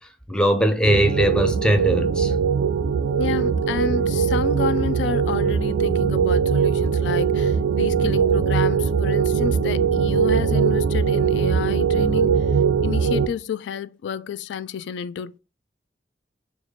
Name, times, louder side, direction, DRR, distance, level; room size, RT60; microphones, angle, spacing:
voice 1, 0.3-2.3, right 1 dB, 5° left, 0.4 m, -20 dB
sound 1, 0.8-13.3, right 6 dB, 80° right, 0.3 m, -21 dB
voice 2, 3.2-12.5 12.8-15.4, left 7 dB, 85° left, 0.3 m, -30 dB
2.9 x 2.4 x 4.2 m
head